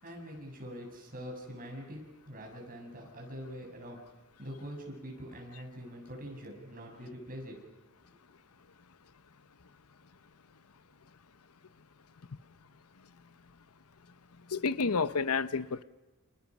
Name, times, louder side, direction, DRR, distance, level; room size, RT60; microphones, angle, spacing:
voice 1, 0.0-4.0 4.4-7.6, equal, 40° right, 6.8 m, -44 dB
voice 2, 14.5-15.8, left 4 dB, 85° left, 0.9 m, -30 dB
29.5 x 27.5 x 6.2 m
head